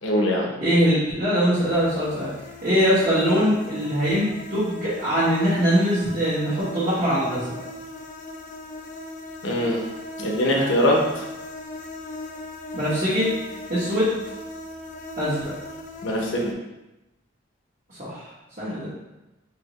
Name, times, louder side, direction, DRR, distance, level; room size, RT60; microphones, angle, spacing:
voice 1, 0.0-0.5 9.4-9.8 10.2-11.2 16.0-16.5, left 1 dB, 80° left, -1 dB, 0.8 m, -22 dB
voice 2, 0.6-2.3 2.6-7.5 10.5-10.9 12.7-13.3 13.7-14.1 15.2-15.5 17.9-18.3 18.6-18.9, equal, 40° right, -11 dB, 1.2 m, -22 dB
sound 1, 1.5-16.5, left 1 dB, 40° left, 0.4 m, -38 dB
4.2 x 2.9 x 3.0 m, 0.99 s
head